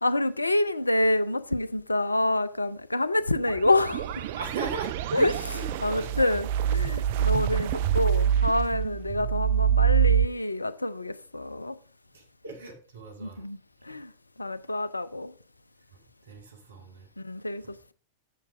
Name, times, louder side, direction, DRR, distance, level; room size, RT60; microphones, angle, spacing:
voice 1, 0.0-4.3 5.1-11.7 13.2-13.6 13.9-14.1 14.4-15.3 17.2-17.6, left 1 dB, 85° left, 0.5 m, -27 dB
sound 1, 3.4-10.2, right 9 dB, 50° right, 0.4 m, -26 dB
voice 2, 4.3-5.0 5.5-8.0 9.1-9.4 12.1-13.5 15.9-17.1 17.6-17.7, right 4 dB, 65° right, 2.0 m, -41 dB
7.4 x 6.6 x 4.7 m
figure-of-eight pair, 90°, 0 cm